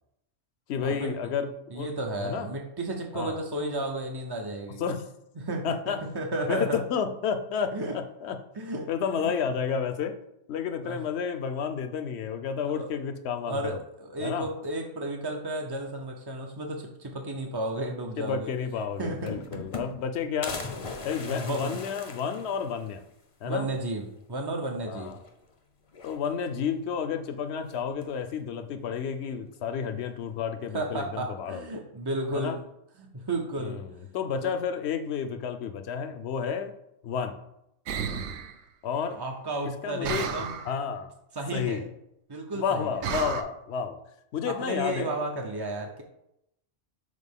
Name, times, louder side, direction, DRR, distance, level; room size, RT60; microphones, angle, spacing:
voice 1, 0.7-1.5 1.7-1.9 2.2-2.5 3.1-3.4 4.8-5.1 5.6-6.0 6.5-8.4 8.9-10.2 10.5-13.8 14.2-14.5 18.2-20.6 21.0-23.0 23.4-23.7 24.9-25.2 26.0-31.7 32.3-32.6 33.6-36.7 37.0-37.4 38.8-39.2 39.8-40.3 40.6-41.1 41.5-41.9 42.5-44.0 44.3-45.2, left 7 dB, 65° left, 8 dB, 0.8 m, -31 dB
voice 2, 1.7-4.8 5.4-6.8 7.7-8.0 8.5-8.9 9.2-9.3 10.8-11.0 12.6-12.9 13.5-18.5 19.0-19.6 21.2-21.8 23.4-25.2 30.7-32.6 33.0-33.8 34.4-34.5 39.1-40.5 41.3-41.8 42.3-43.0 44.5-46.0, right 2 dB, 35° right, 2 dB, 0.4 m, -33 dB
sound 1, 18.4-18.5 18.8-20.1 20.4-23.0 23.4-23.5 23.8-23.9 25.0-25.5 25.9-26.6 27.7-28.2, left 4 dB, 35° left, 0.6 m, -39 dB
sound 2, 37.9-38.5 40.0-40.7 43.0-43.4, right 6 dB, 70° right, 0.9 m, -31 dB
6.5 x 4.2 x 3.6 m, 0.81 s
omnidirectional pair, 1.3 m